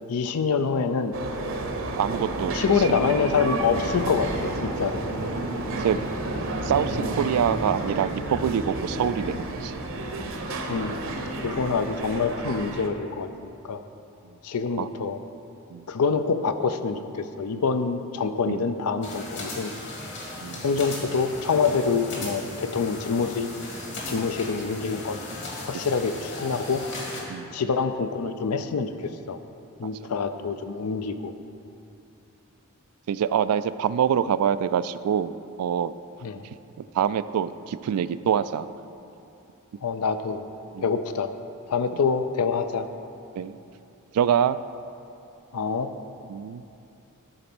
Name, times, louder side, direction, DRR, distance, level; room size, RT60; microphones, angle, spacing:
voice 1, 0.1-1.1 2.5-5.1 10.7-11.1 11.4-13.3 13.6-13.8 14.4-15.2 15.9-19.7 20.6-23.5 24.1-25.2 25.6-26.8 27.5-29.4 29.8-31.3 36.2-36.4 39.8-40.4 40.8-41.3 41.7-42.9 45.5-45.9, left 5 dB, 80° left, 10 dB, 0.5 m, -26 dB
sound 1, 1.1-12.9, right 2 dB, 60° right, 0.8 m, -31 dB
voice 2, 2.0-2.5 5.7-6.0 6.6-9.7 14.8-14.9 15.7-15.9 18.5-18.7 20.4-20.6 27.3-27.5 29.8-29.9 33.1-35.9 36.9-38.7 40.7-40.8 43.4-43.6 44.1-44.6 46.3-46.6, right 8 dB, 80° right, 16 dB, 0.3 m, -25 dB
sound 2, 19.0-27.2, left 2 dB, 55° left, 2.0 m, -37 dB
12.0 x 4.0 x 6.0 m, 2.7 s
head